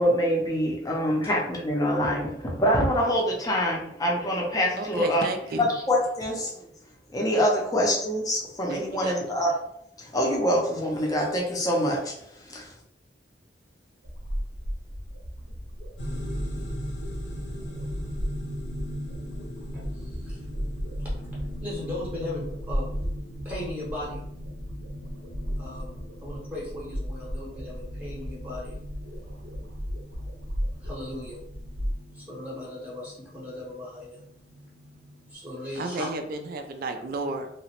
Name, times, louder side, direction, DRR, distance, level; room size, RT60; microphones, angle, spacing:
voice 1, 0.0-5.3 5.6-6.7 7.1-9.5 10.0-12.7, equal, 20° left, -1 dB, 0.5 m, -25 dB
voice 2, 4.8-5.7 8.7-9.4 35.7-37.5, right 2 dB, 55° right, 6 dB, 0.3 m, -33 dB
sound 1, 14.0-31.9, equal, 80° right, 0.7 m, -35 dB
sound 2, 16.0-35.3, equal, 80° left, 0.7 m, -40 dB
voice 3, 19.7-20.5 21.6-22.9 23.4-24.2 25.6-28.8 30.8-31.4 32.1-34.2 35.3-36.1, left 1 dB, 10° right, -7 dB, 0.8 m, -37 dB
2.9 x 2.1 x 2.8 m, 0.76 s
head